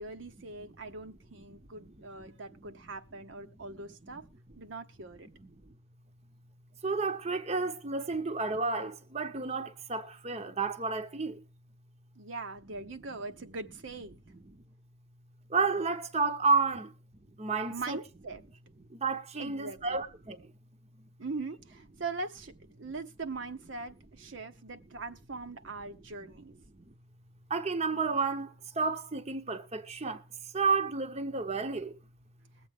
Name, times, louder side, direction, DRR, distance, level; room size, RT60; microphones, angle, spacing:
voice 1, 0.0-4.2 4.6-5.3 12.2-14.2 17.7-18.4 19.4-20.0 21.2-26.5, right 3 dB, 75° right, 1.0 m, -41 dB
voice 2, 6.8-11.4 15.5-16.9 17.4-18.0 18.9-20.5 27.5-30.2 30.5-32.0, right 4 dB, 35° right, 0.9 m, -31 dB
21.5 x 7.9 x 3.5 m
head